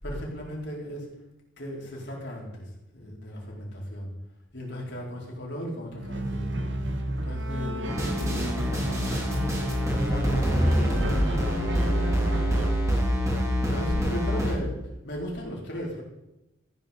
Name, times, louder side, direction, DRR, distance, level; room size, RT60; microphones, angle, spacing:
voice 1, 0.0-1.1 1.6-4.1 4.5-6.7 7.2-9.7 10.1-12.7 13.6-14.7 15.0-16.0, equal, 55° left, -2 dB, 4.8 m, -36 dB
sound 1, 5.9-12.7, right 1 dB, 60° right, 1.5 m, -32 dB
sound 2, 7.9-14.5, equal, 15° right, 3.1 m, -26 dB
15.5 x 9.4 x 5.5 m, 0.93 s
head